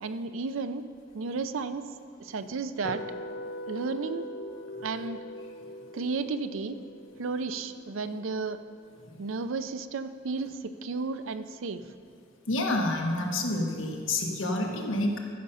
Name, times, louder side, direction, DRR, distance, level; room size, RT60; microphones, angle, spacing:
voice 1, 0.0-0.8 1.1-1.8 2.2-3.0 3.7-4.2 4.8-5.2 5.9-6.8 7.2-8.6 9.2-11.8, right 4 dB, 75° right, 11 dB, 0.5 m, -33 dB
sound 1, 2.8-8.9, left 1 dB, 50° left, 0.5 m, -42 dB
voice 2, 12.5-15.2, left 2 dB, 70° left, 1 dB, 1.3 m, -28 dB
14.0 x 5.6 x 5.5 m, 2.2 s
head